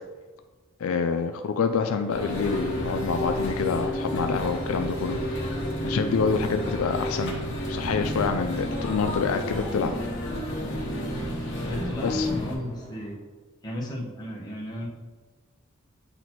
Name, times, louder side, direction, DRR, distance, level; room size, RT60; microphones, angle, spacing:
voice 1, 0.8-5.2 5.8-9.9 12.0-12.3, left 5 dB, 80° left, 7 dB, 0.4 m, -27 dB
sound 1, 1.6-13.1, equal, 90° right, 1.8 m, -51 dB
sound 2, 2.1-12.6, left 1 dB, 60° left, 1.2 m, -30 dB
voice 2, 11.6-13.2 13.6-14.9, equal, 20° left, -4 dB, 1.2 m, -34 dB
9.0 x 4.0 x 3.0 m, 1.3 s
head